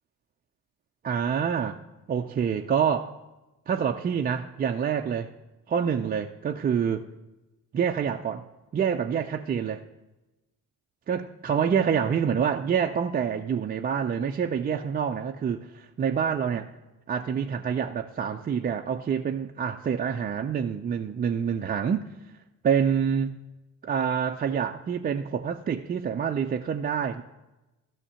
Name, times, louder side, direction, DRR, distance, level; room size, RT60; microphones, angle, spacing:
voice 1, 1.0-1.8 2.1-3.2 3.7-5.3 5.7-7.1 7.7-8.5 8.7-9.8 11.1-16.6 17.1-22.1 22.6-23.3 23.8-27.2, right 7 dB, 20° right, 0.3 m, -27 dB
12.5 x 5.8 x 5.6 m
hypercardioid pair, 55°, 48 cm